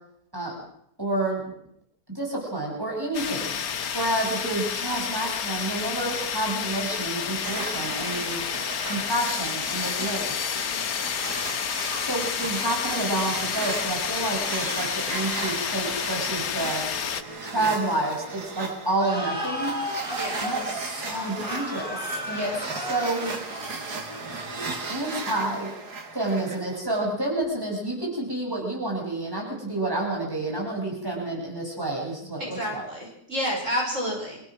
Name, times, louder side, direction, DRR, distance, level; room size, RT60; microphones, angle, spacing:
voice 1, 1.0-1.4 2.1-3.6 3.9-8.4 8.8-10.4 12.0-16.8 17.4-19.7 20.4-23.3 24.9-25.7 26.1-32.9, right 2 dB, 15° right, -2 dB, 7.2 m, -29 dB
Jungle Rainfall, 3.1-17.2, left 7 dB, 65° left, 1.5 m, -30 dB
sound 1, 7.4-26.8, right 3 dB, 75° right, 2.8 m, -36 dB
voice 2, 10.6-11.0 20.1-20.5 22.3-22.6 32.4-34.4, equal, 50° right, -2 dB, 6.3 m, -30 dB
sound 2, 19.0-25.4, equal, 5° left, 5.7 m, -35 dB
26.0 x 16.0 x 6.3 m, 0.75 s
omnidirectional pair, 1.7 m